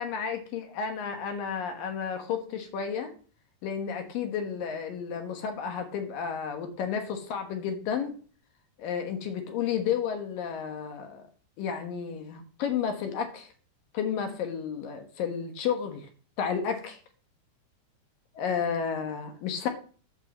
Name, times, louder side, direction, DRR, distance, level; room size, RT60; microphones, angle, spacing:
voice 1, 0.0-3.1 3.6-8.2 8.8-11.2 11.6-13.5 13.9-16.1 16.4-17.0 18.3-19.7, left 7 dB, 65° left, 5 dB, 2.6 m, -32 dB
9.4 x 5.4 x 7.3 m, 0.41 s
omnidirectional pair, 4.6 m